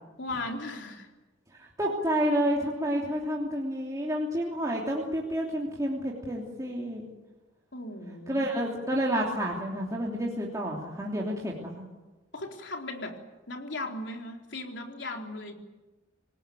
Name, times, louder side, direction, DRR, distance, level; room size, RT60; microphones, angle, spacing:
voice 1, 0.2-1.1 7.7-8.5 12.3-13.2 13.5-15.5, left 2 dB, 70° left, 2 dB, 4.0 m, -37 dB
voice 2, 1.5-7.1 8.3-11.8, equal, 20° right, -3 dB, 3.2 m, -30 dB
26.0 x 19.0 x 9.4 m, 1.1 s
head